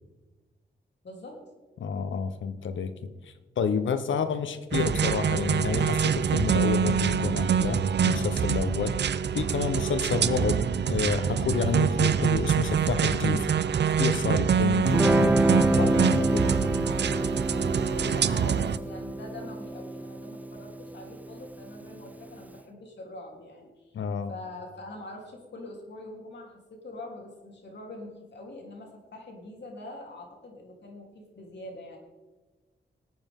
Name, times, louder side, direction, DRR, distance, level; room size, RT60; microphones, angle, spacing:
voice 1, 1.0-1.4 17.8-24.0 24.3-32.0, left 1 dB, 65° left, 0 dB, 3.5 m, -43 dB
voice 2, 1.8-3.1 3.6-9.0 9.3-13.5 13.9-16.6 23.9-24.3, left 5 dB, 85° left, 11 dB, 1.0 m, -29 dB
sound 1, 4.7-18.8, right 7 dB, 65° right, 0.6 m, -25 dB
Guitar, 14.8-22.0, right 1 dB, 10° right, 0.4 m, -27 dB
21.5 x 9.1 x 3.7 m, 1.3 s
cardioid pair, 65°, 19 cm